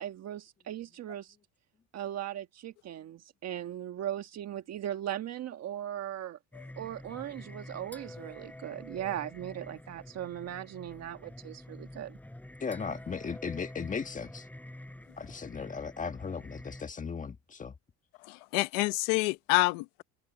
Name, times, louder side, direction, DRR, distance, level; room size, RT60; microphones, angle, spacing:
voice 1, 0.0-1.4 1.9-6.4 6.8-12.2, right 11 dB, 45° right, 1.5 m, -38 dB
Singing, 6.5-16.8, left 1 dB, 5° left, 5.2 m, -47 dB
voice 2, 12.6-14.5 15.2-17.7, left 5 dB, 20° left, 1.5 m, -37 dB
voice 3, 18.2-20.0, left 23 dB, 85° left, 1.2 m, -28 dB
open air
cardioid pair, 125°, 36 cm